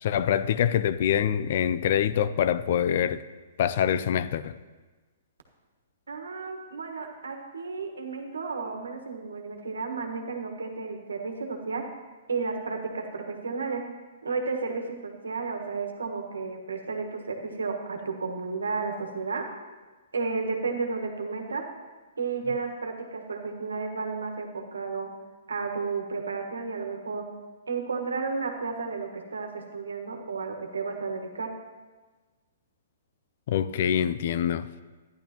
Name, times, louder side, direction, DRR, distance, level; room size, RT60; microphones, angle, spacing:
voice 1, 0.0-3.2 3.6-4.5 33.5-34.7, left 9 dB, 55° left, 15 dB, 0.4 m, -25 dB
voice 2, 6.1-11.8 12.3-13.8 14.2-19.4 20.1-21.6 22.2-25.1 25.5-27.2 27.7-31.5, right 4 dB, 90° right, 4 dB, 1.4 m, -32 dB
12.0 x 10.5 x 3.0 m, 1.3 s
hypercardioid pair, 130°, 0 cm